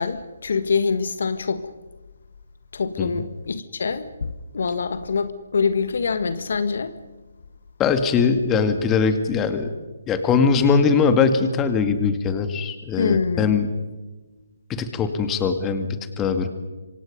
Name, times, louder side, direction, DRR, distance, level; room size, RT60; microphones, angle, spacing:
voice 1, 0.0-1.7 2.7-7.0 13.0-13.6, left 5 dB, 60° left, 1.6 m, -25 dB
voice 2, 7.8-9.7 10.1-13.7 14.7-15.9 16.2-16.5, left 5 dB, 15° left, 2.2 m, -21 dB
27.0 x 25.0 x 5.4 m
figure-of-eight pair, 145°, 0 cm